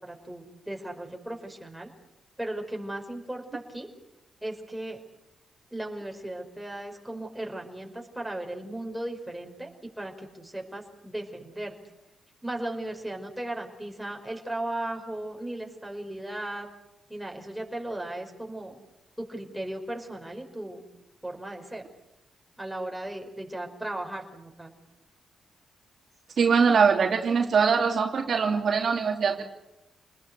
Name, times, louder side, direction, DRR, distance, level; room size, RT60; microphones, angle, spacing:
voice 1, 0.0-1.9 2.4-3.9 4.4-5.0 5.7-11.8 12.4-16.7 17.1-18.8 19.2-20.8 21.2-21.8 22.6-24.8, right 1 dB, 5° right, 1 dB, 5.4 m, -36 dB
voice 2, 26.4-29.5, right 5 dB, 60° right, 2 dB, 2.8 m, -22 dB
29.0 x 20.0 x 8.2 m, 0.91 s
cardioid pair, 95°, 0 cm